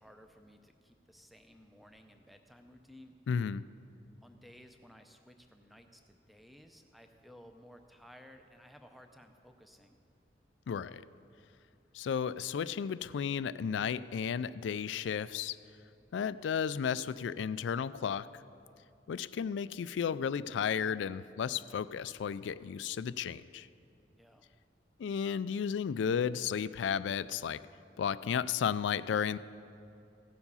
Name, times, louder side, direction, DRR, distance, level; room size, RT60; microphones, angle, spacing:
voice 1, 0.0-3.1 4.2-10.0 24.2-24.5, equal, ahead, 5 dB, 0.5 m, -57 dB
voice 2, 3.3-3.6 10.7-11.1 11.9-15.6 16.1-18.4 19.1-23.7 25.0-27.6 28.0-29.4, left 7 dB, 85° left, 17 dB, 0.3 m, -33 dB
16.0 x 7.1 x 5.5 m, 2.6 s
head